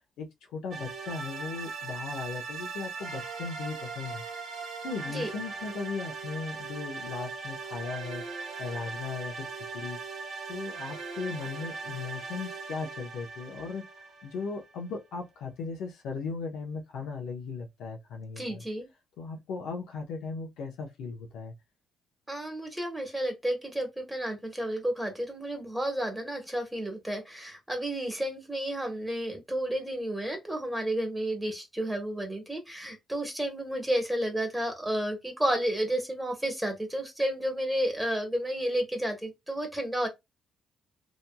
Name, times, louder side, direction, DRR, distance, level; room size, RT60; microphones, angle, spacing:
voice 1, 0.2-4.2 4.8-8.2 8.6-10.0 10.5-18.6 19.2-21.5, left 4 dB, 85° left, 0.8 m, -37 dB
sound 1, 0.7-14.9, right 4 dB, 65° right, 1.0 m, -40 dB
voice 2, 18.4-18.9 22.3-40.1, right 1 dB, 5° right, 1.2 m, -31 dB
2.9 x 2.6 x 2.2 m
cardioid pair, 90°, 0 cm